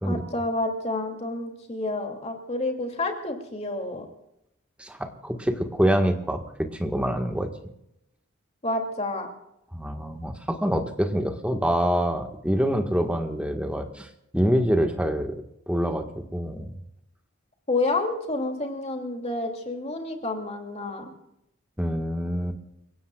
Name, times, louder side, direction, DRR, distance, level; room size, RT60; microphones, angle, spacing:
voice 1, 0.0-4.0 8.6-9.3 17.7-21.1, left 2 dB, 30° left, 3 dB, 2.8 m, -29 dB
voice 2, 4.8-7.5 9.7-14.1 14.3-15.4 15.7-16.1 16.3-16.8 21.8-22.6, equal, 5° right, 4 dB, 1.6 m, -25 dB
29.5 x 17.0 x 2.4 m, 0.82 s
head